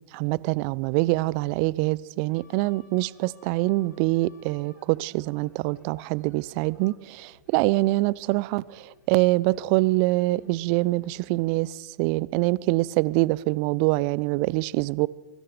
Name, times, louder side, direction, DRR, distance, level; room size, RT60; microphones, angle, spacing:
voice 1, 0.1-15.1, right 21 dB, 45° right, 23 dB, 0.7 m, -25 dB
sound 1, 2.3-11.1, left 3 dB, 75° left, 6.8 m, -57 dB
24.5 x 23.0 x 5.0 m, 1.1 s
figure-of-eight pair, 95°, 10 cm